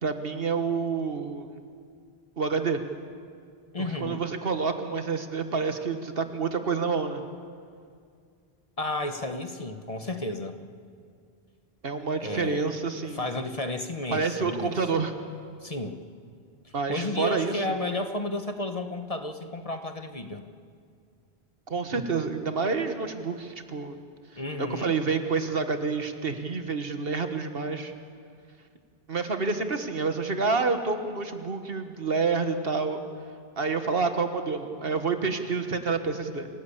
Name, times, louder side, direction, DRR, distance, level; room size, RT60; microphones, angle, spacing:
voice 1, 0.0-1.6 2.4-2.8 3.8-7.2 11.8-13.2 14.1-15.1 16.7-17.5 21.7-24.0 24.6-27.9 29.1-33.0 33.6-36.5, right 4 dB, 60° right, 7 dB, 1.6 m, -28 dB
voice 2, 3.7-4.2 8.8-10.6 12.2-12.7 13.0-15.1 15.6-16.0 16.6-20.5 24.4-24.9, left 2 dB, 35° left, 7 dB, 1.1 m, -32 dB
26.5 x 15.5 x 8.6 m, 2.2 s
omnidirectional pair, 1.1 m